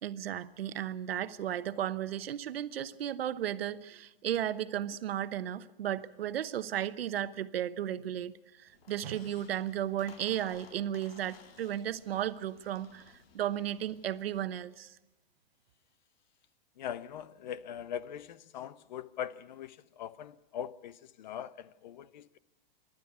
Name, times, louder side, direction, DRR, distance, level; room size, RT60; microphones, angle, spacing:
voice 1, 0.0-13.0 13.3-14.9, right 11 dB, 85° right, 1.1 m, -34 dB
Squeak, 8.7-14.5, left 5 dB, 80° left, 2.4 m, -58 dB
voice 2, 16.8-22.4, left 9 dB, 50° left, 0.7 m, -41 dB
27.0 x 12.0 x 9.4 m
supercardioid pair, 175°, 29 cm